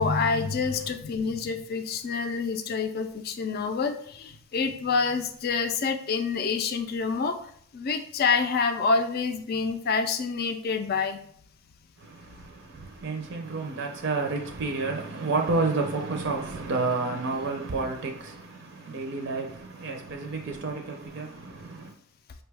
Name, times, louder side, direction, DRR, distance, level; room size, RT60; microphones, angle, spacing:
voice 1, 0.0-7.4 7.7-11.2, left 5 dB, 45° left, 0.4 m, -27 dB
voice 2, 12.0-21.9, right 3 dB, 55° right, 0.4 m, -30 dB
5.2 x 2.3 x 3.3 m
head